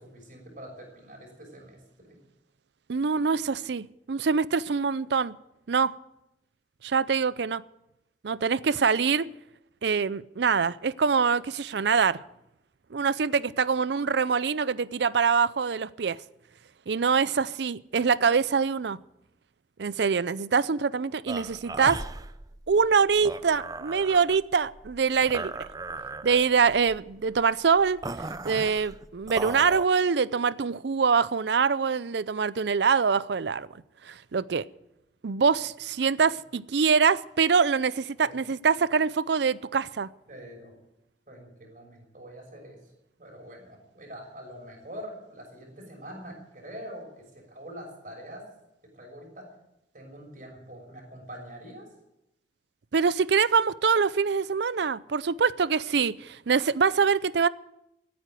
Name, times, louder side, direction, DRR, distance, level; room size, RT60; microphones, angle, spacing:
voice 1, 0.0-2.2 38.2-38.4 40.3-40.7 41.3-42.8 43.2-48.4 48.9-49.5 49.9-51.9, equal, 45° right, 6.2 m, -44 dB
voice 2, 2.9-5.4 5.7-5.9 6.8-7.6 8.2-9.3 9.8-12.2 12.9-16.2 16.9-19.0 19.8-22.0 22.7-25.6 26.2-28.0 28.4-33.7 34.1-34.6 35.2-40.1 52.9-57.5, right 5 dB, 65° right, 0.5 m, -24 dB
sound 1, 21.3-29.9, right 3 dB, 20° right, 0.5 m, -38 dB
15.5 x 9.5 x 9.2 m
head